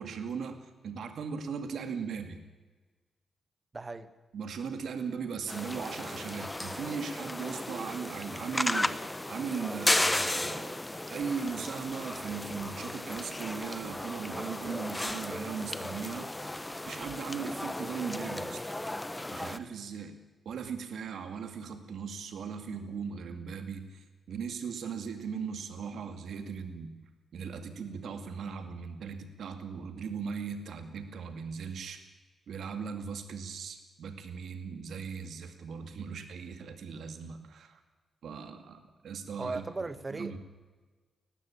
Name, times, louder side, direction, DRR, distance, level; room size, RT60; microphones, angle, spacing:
voice 1, 0.0-2.4 4.3-9.0 9.3-10.8 11.1-16.3 16.8-18.6 19.3-20.2 20.4-27.0 27.3-32.0 32.5-37.8 38.2-39.6 40.1-40.4, right 6 dB, 75° right, 8 dB, 2.4 m, -38 dB
voice 2, 3.7-4.1 39.4-40.4, right 3 dB, 30° right, 13 dB, 1.6 m, -37 dB
sound 1, 5.5-19.6, left 1 dB, 15° left, 1.1 m, -34 dB
20.0 x 15.0 x 8.8 m, 1.3 s
cardioid pair, 65°, 0 cm